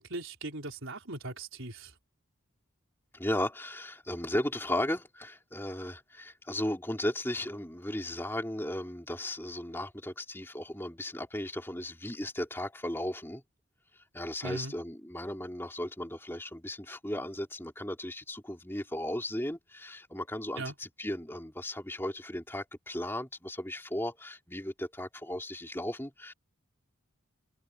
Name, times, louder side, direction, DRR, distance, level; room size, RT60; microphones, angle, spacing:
voice 1, 0.0-2.0 14.4-14.7 20.6-20.7, right 2 dB, 65° right, 4.2 m, -39 dB
voice 2, 3.1-13.4 14.1-26.3, left 1 dB, 10° left, 3.0 m, -36 dB
head